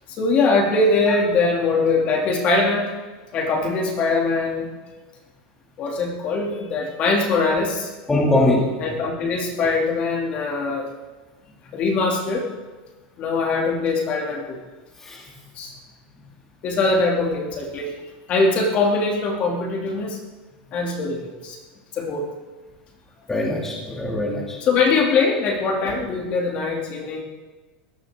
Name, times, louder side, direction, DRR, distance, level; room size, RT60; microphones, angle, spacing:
voice 1, 0.2-2.9 3.3-4.7 5.8-7.9 8.8-10.9 11.7-12.5 13.2-14.6 15.6-15.7 16.6-18.0 18.3-20.2 20.7-21.6 21.9-22.3 24.6-27.2, left 3 dB, 30° left, 1 dB, 2.5 m, -22 dB
voice 2, 8.1-8.7 15.0-15.2 23.3-24.6, left 2 dB, 10° left, -2 dB, 2.2 m, -21 dB
22.5 x 17.5 x 3.6 m, 1.3 s
supercardioid pair, 175°, 5 cm